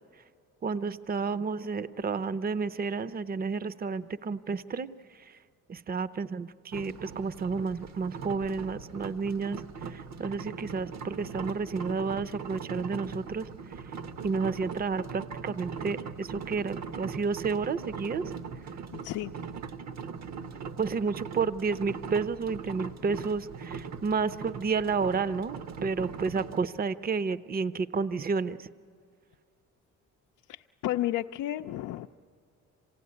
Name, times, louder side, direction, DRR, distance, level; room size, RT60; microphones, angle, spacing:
voice 1, 0.6-5.4 5.7-13.5 14.2-18.4 20.8-28.7, right 5 dB, 30° right, 15 dB, 0.6 m, -31 dB
sound 1, 6.7-26.6, right 5 dB, 60° right, 0.9 m, -40 dB
voice 2, 18.9-19.3 30.5-32.1, left 14 dB, 85° left, 4 dB, 0.5 m, -32 dB
26.5 x 16.5 x 9.6 m, 2.4 s
cardioid pair, 90°, 30 cm